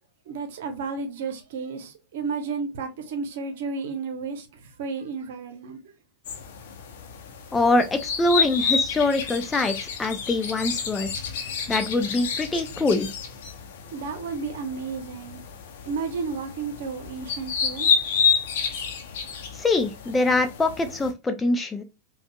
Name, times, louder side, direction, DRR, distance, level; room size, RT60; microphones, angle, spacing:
voice 1, 0.3-5.9 13.9-15.4 15.9-17.9, right 5 dB, 55° right, 1.0 m, -32 dB
sound 1, 6.3-21.1, left 6 dB, 55° left, 0.8 m, -29 dB
voice 2, 7.5-11.1 11.7-13.1 19.5-21.8, left 2 dB, 15° left, 0.6 m, -24 dB
5.2 x 2.4 x 2.4 m
figure-of-eight pair, 90°, 0 cm